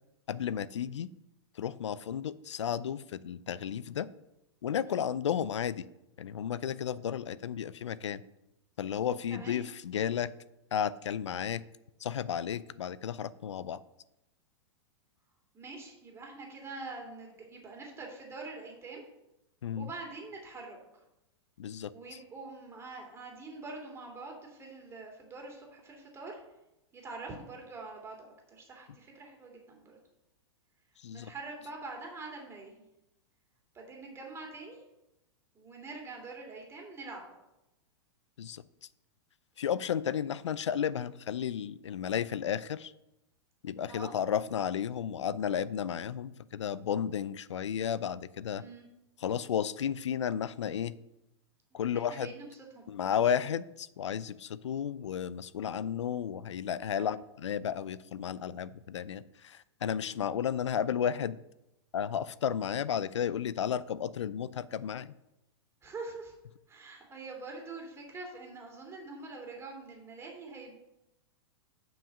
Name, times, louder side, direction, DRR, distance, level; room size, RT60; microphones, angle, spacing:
voice 1, 0.3-1.1 1.5-4.1 4.6-5.9 6.2-8.2 8.8-10.3 10.7-11.6 12.0-13.8 19.6-19.9 21.6-22.2 31.0-31.3 38.4-38.9 39.6-42.9 43.6-48.6 49.2-50.9 51.7-52.3 52.9-61.4 61.9-65.1, left 8 dB, 90° left, 18 dB, 0.5 m, -33 dB
voice 2, 9.3-9.6 15.5-19.1 19.8-21.0 21.9-26.4 26.9-30.0 31.1-32.7 33.7-34.8 35.5-37.4 43.9-44.1 48.5-48.9 51.7-52.8 56.9-57.1 65.8-66.3 66.7-70.8, right 3 dB, 15° right, 1 dB, 2.7 m, -45 dB
7.1 x 6.2 x 6.4 m, 0.90 s
hypercardioid pair, 125°, 15 cm